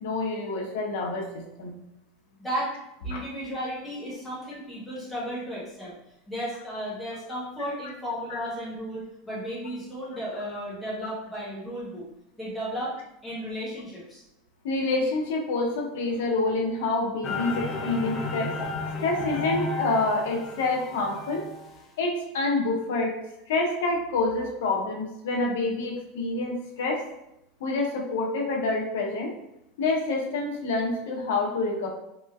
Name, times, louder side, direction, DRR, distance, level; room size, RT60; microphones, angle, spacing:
voice 1, 0.0-1.7 3.1-3.2 8.3-8.4 14.6-18.5 19.0-21.4 22.0-23.1 23.5-27.0 27.6-29.3 29.8-31.9, left 3 dB, 85° left, 1 dB, 0.6 m, -27 dB
voice 2, 2.4-2.7 3.0-5.9 6.3-12.0 12.4-12.9 13.2-14.2, equal, ahead, -8 dB, 0.9 m, -34 dB
sound 1, 17.2-21.8, left 3 dB, 25° left, 0.4 m, -33 dB
3.1 x 3.0 x 2.2 m, 0.85 s
supercardioid pair, 165°, 0 cm